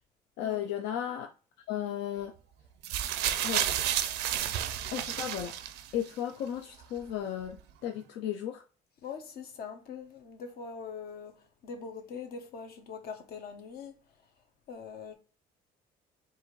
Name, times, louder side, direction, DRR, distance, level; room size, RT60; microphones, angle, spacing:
voice 1, 0.4-1.3 1.7-2.3 3.4-3.7 4.9-5.5 5.9-8.6, left 10 dB, 85° left, 0.5 m, -34 dB
sound 1, 2.8-6.1 7.0-7.1, right 11 dB, 85° right, 0.5 m, -31 dB
voice 2, 9.0-13.9 14.7-15.1, left 5 dB, 65° left, 1.0 m, -42 dB
4.6 x 2.6 x 3.1 m
cardioid pair, 110°, 17 cm